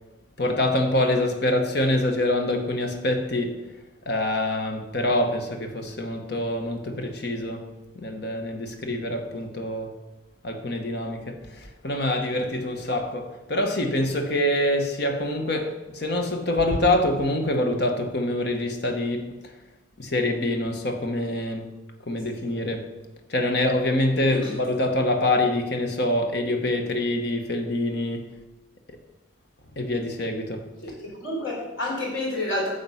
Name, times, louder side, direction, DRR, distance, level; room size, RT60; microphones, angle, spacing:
voice 1, 0.4-3.6 4.1-7.7 7.9-9.9 10.4-19.4 20.0-21.7 22.1-22.9 23.3-28.3 28.9-29.0 29.8-30.7, left 1 dB, 55° left, 1.2 m, -25 dB
voice 2, 31.2-32.7, left 1 dB, 80° left, 4.1 m, -29 dB
9.2 x 7.0 x 5.7 m
head